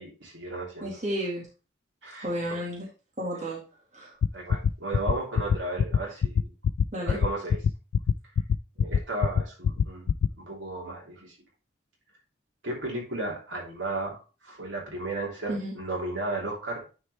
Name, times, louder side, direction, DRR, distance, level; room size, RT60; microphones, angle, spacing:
voice 1, 0.0-0.9 2.0-2.2 4.3-6.5 7.1-7.6 8.8-10.1 10.4-11.4 12.6-14.2 14.4-16.8, right 2 dB, 80° right, -2 dB, 3.1 m, -34 dB
voice 2, 0.8-1.5 2.2-2.9 3.2-3.6 3.9-4.2 6.9-7.2 15.5-15.7, equal, 40° right, -4 dB, 1.9 m, -32 dB
sound 1, 4.2-10.3, left 6 dB, 80° left, 0.3 m, -22 dB
9.8 x 4.6 x 3.2 m, 0.33 s
head